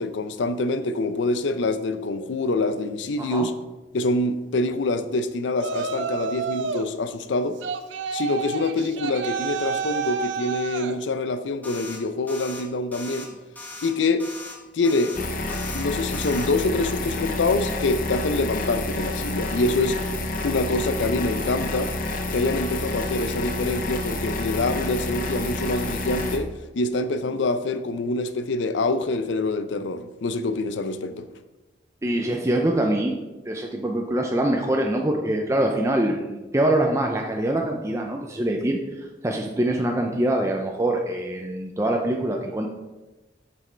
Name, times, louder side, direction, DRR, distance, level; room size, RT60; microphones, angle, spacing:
voice 1, 0.0-3.5 3.9-7.6 8.1-13.4 13.8-14.3 14.7-15.1 15.7-20.0 20.4-21.9 22.3-31.3, left 2 dB, 85° left, 0.5 m, -25 dB
Yell, 5.6-6.9 7.6-11.0, right 6 dB, 85° right, 0.5 m, -29 dB
sound 1, 11.6-12.0 12.3-12.6 12.9-13.3 13.5-13.9 14.2-14.6 14.8-15.2 15.5-15.8 16.1-16.5, left 2 dB, 10° left, 1.0 m, -39 dB
sound 2, 15.1-26.4, left 2 dB, 50° left, 0.7 m, -29 dB
voice 2, 32.0-33.2 33.5-42.7, right 1 dB, 15° right, 0.5 m, -24 dB
7.4 x 6.1 x 3.3 m
head